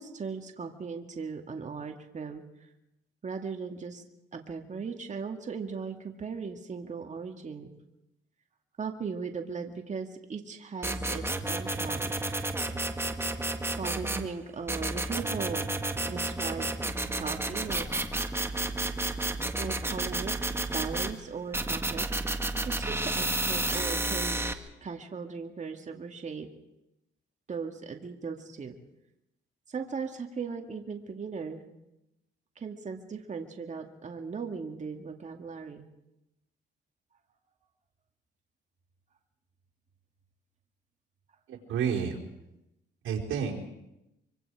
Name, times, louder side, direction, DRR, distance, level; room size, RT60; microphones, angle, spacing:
voice 1, 0.0-2.4 3.2-4.0 4.3-7.7 8.8-12.1 13.8-15.7 16.1-16.7 17.2-17.9 19.6-20.4 20.7-22.1 22.7-24.4 24.8-26.5 27.5-28.8 29.7-31.6 32.6-35.8, right 5 dB, 35° right, 4 dB, 2.2 m, -38 dB
sound 1, 10.8-14.3 14.7-21.1 21.5-24.5, right 2 dB, 10° right, 1.7 m, -31 dB
voice 2, 41.5-42.2 43.0-43.6, right 7 dB, 80° right, 0 dB, 4.5 m, -30 dB
24.5 x 24.5 x 4.9 m, 0.88 s
cardioid pair, 90°, 20 cm